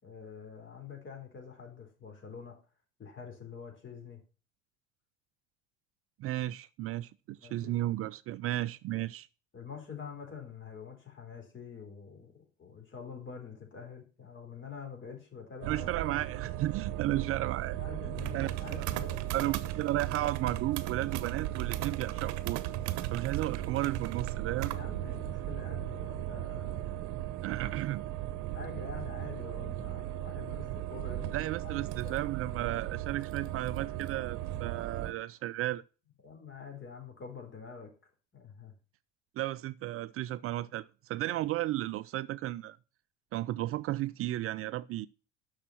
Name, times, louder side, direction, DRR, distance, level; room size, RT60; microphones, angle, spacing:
voice 1, 0.0-2.6 3.0-4.2 7.4-7.7 9.5-15.9 17.1-17.2 17.7-19.5 24.7-27.0 27.4-27.5 28.5-32.2 36.2-37.9 38.3-38.7, left 6 dB, 35° left, 4.6 m, -46 dB
voice 2, 6.2-9.3 15.7-17.8 18.3-19.0 19.3-22.6 23.1-24.7 27.4-28.0 31.3-35.8 39.4-42.8 43.3-45.1, right 15 dB, 40° right, 0.5 m, -34 dB
sound 1, 15.6-35.1, right 14 dB, 55° right, 1.0 m, -36 dB
11.0 x 6.5 x 6.0 m
figure-of-eight pair, 65°, 35 cm